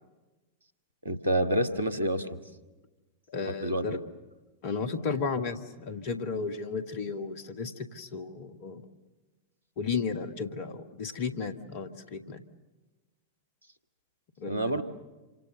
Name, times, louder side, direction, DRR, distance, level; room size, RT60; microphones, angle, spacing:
voice 1, 1.1-2.4 3.6-4.0 14.5-14.8, right 1 dB, 75° right, 10 dB, 1.7 m, -28 dB
voice 2, 3.3-4.0 4.6-8.8 9.8-12.4 14.4-14.8, left 5 dB, 50° left, 8 dB, 2.0 m, -34 dB
28.0 x 26.5 x 6.6 m, 1.2 s
figure-of-eight pair, 90°, 0 cm